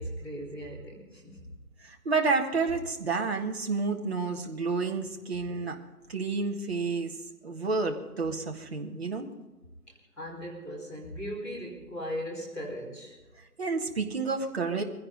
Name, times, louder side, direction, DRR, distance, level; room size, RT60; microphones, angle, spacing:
voice 1, 0.0-1.5 10.2-13.1, equal, ahead, -14 dB, 1.5 m, -38 dB
voice 2, 1.8-5.8 6.1-7.2 7.4-9.3 13.6-14.8, right 4 dB, 40° right, 2 dB, 1.6 m, -30 dB
22.0 x 16.0 x 3.9 m, 1.2 s
figure-of-eight pair, 160°, 49 cm